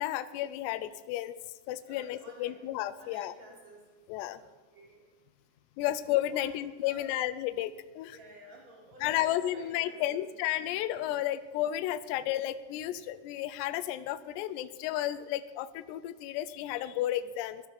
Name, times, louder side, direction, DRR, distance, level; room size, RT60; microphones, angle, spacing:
voice 1, 0.0-1.4 1.7-3.3 4.1-4.4 5.8-8.2 9.0-17.6, left 13 dB, 85° left, 11 dB, 2.7 m, -32 dB
voice 2, 1.9-2.6 3.0-3.8 4.3-5.0 6.3-7.1 8.0-10.2, right 1 dB, 40° right, -5 dB, 5.6 m, -52 dB
20.5 x 12.0 x 5.0 m, 1.2 s
omnidirectional pair, 4.9 m